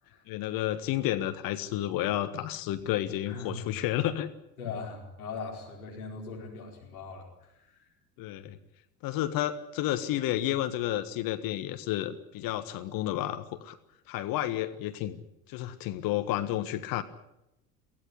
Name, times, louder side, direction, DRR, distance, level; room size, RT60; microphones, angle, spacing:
voice 1, 0.3-4.3 8.2-8.6 9.0-13.8 14.1-15.2 15.5-17.0, left 13 dB, 50° left, 10 dB, 1.5 m, -31 dB
voice 2, 3.3-3.6 4.6-7.9, left 4 dB, 75° left, -1 dB, 5.0 m, -41 dB
23.5 x 16.5 x 9.8 m, 0.88 s
figure-of-eight pair, 65°, 44 cm